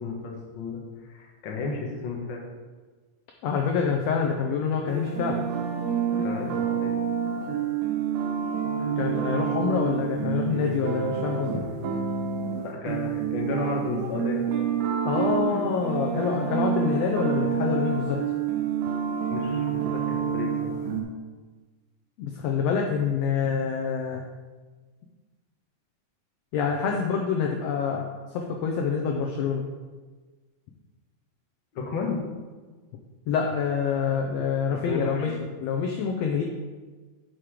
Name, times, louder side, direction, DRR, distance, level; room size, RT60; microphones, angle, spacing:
voice 1, 0.0-2.4 6.2-6.9 11.5-11.6 12.6-14.4 19.3-20.9 31.7-32.2 34.7-35.3, left 4 dB, 60° left, -1 dB, 1.3 m, -33 dB
voice 2, 3.4-5.5 9.0-11.5 15.0-18.2 22.2-24.2 26.5-29.6 33.3-36.4, left 6 dB, 80° left, 1 dB, 1.5 m, -26 dB
sound 1, 4.9-21.0, right 7 dB, 80° right, 2.5 m, -28 dB
6.3 x 5.9 x 4.9 m, 1.4 s
omnidirectional pair, 3.7 m